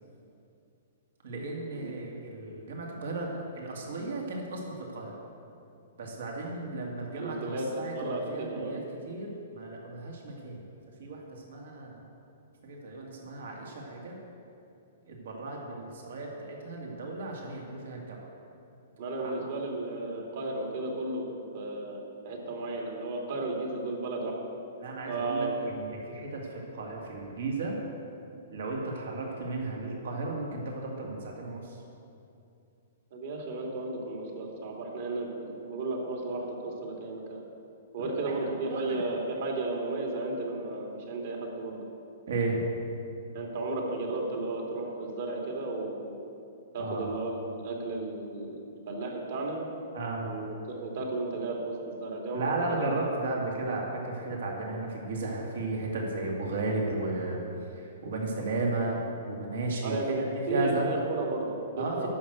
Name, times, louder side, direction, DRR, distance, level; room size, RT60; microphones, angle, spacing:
voice 1, 1.2-5.1 6.0-10.6 11.0-12.0 12.6-14.2 15.1-18.3 19.2-19.3 24.8-27.8 28.5-31.8 38.0-39.0 42.3-42.7 46.8-47.2 49.9-50.3 52.3-57.4 57.8-59.0 59.3-60.2 60.5-61.0 61.8-62.1, right 2 dB, 75° right, -1 dB, 2.2 m, -34 dB
voice 2, 7.1-7.7 7.9-8.8 19.0-21.3 21.5-24.4 25.1-25.6 33.1-37.4 37.9-41.9 43.3-46.1 46.7-48.6 48.9-49.6 50.2-52.8 59.8-62.1, right 2 dB, 55° right, -1 dB, 2.5 m, -34 dB
11.0 x 6.4 x 8.0 m, 2.7 s
hypercardioid pair, 155°, 0 cm